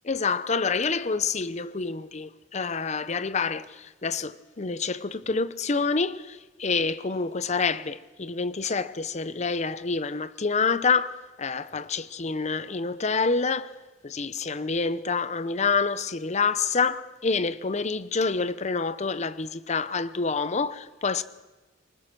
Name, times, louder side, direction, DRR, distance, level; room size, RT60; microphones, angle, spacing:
voice 1, 0.0-13.7 14.0-21.2, left 4 dB, 35° left, 0.7 m, -27 dB
24.0 x 20.5 x 6.1 m
head